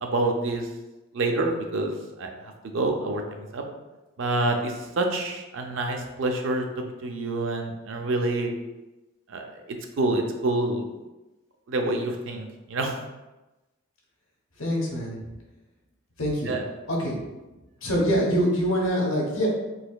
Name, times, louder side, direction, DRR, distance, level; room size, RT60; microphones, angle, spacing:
voice 1, 0.0-0.7 1.1-2.3 2.7-3.6 4.2-6.7 7.0-8.5 9.3-9.5 10.0-10.8 11.7-12.9 16.5-16.6, right 2 dB, 60° right, 3 dB, 0.4 m, -27 dB
voice 2, 14.6-15.2 16.2-16.5 16.9-17.1 17.8-19.5, equal, 70° left, -2 dB, 1.0 m, -24 dB
4.1 x 2.8 x 2.2 m, 1.0 s
head